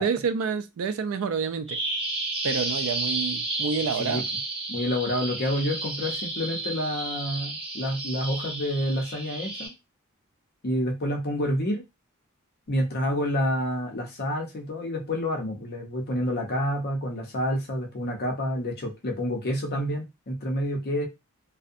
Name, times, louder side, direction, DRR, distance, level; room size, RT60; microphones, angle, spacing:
voice 1, 0.0-1.8 2.4-4.2, right 6 dB, 70° right, 0.4 m, -28 dB
Bird vocalization bird call bird song, 1.7-9.7, right 2 dB, 25° right, 0.7 m, -32 dB
voice 2, 4.7-9.7 10.6-11.8 12.7-21.1, equal, 50° left, 0.6 m, -28 dB
2.6 x 2.1 x 2.4 m
head